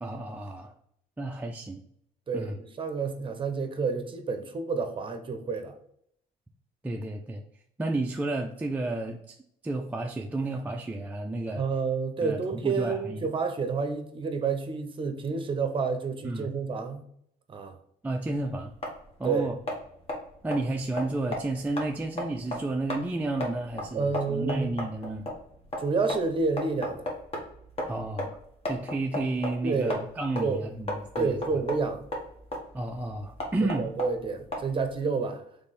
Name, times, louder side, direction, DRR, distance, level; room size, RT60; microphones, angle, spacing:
voice 1, 0.0-0.7 1.2-1.8 2.3-2.6 6.8-7.4 7.8-9.4 9.6-11.6 12.2-13.3 16.2-16.5 18.0-18.7 19.2-19.6 20.4-25.3 27.9-28.4 28.7-31.3 32.7-33.9, right 2 dB, 10° right, 0.4 m, -31 dB
voice 2, 2.3-5.7 11.5-17.0 17.5-17.8 19.2-19.5 23.9-24.7 25.8-27.1 29.6-30.0 30.4-30.7 31.2-32.0 33.6-35.4, right 4 dB, 30° right, 0.7 m, -29 dB
sound 1, 18.2-35.0, left 1 dB, 35° left, 1.4 m, -37 dB
3.4 x 3.3 x 4.1 m
cardioid pair, 110°, 17 cm